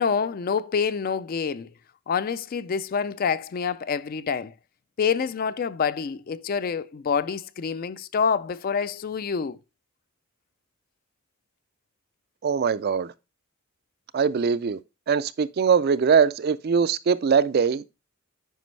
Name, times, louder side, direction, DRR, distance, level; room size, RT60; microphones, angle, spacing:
voice 1, 0.0-1.7 2.1-4.5 5.0-9.6, left 6 dB, 40° left, 0.3 m, -27 dB
voice 2, 12.4-13.1 14.1-14.8 15.1-17.8, right 6 dB, 45° right, 0.3 m, -22 dB
9.2 x 5.2 x 3.2 m
head